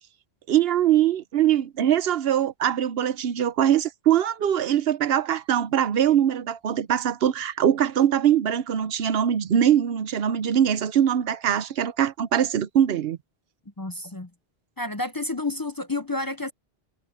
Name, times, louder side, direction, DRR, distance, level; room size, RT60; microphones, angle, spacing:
voice 1, 0.5-13.2, right 10 dB, 75° right, 0.9 m, -22 dB
voice 2, 13.8-14.3 14.8-16.5, left 2 dB, 25° left, 0.6 m, -30 dB
omnidirectional pair, 1.0 m